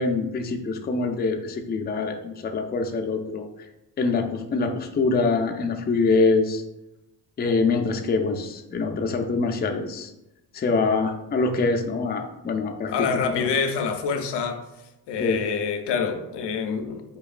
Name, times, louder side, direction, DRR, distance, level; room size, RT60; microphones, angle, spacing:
voice 1, 0.0-3.5 4.0-6.6 7.4-10.1 10.5-13.5 15.2-15.4, left 3 dB, 25° left, 0.4 m, -24 dB
voice 2, 12.8-14.6 15.1-17.0, left 5 dB, 85° left, 0.5 m, -26 dB
3.9 x 3.0 x 2.4 m
cardioid pair, 70°, 41 cm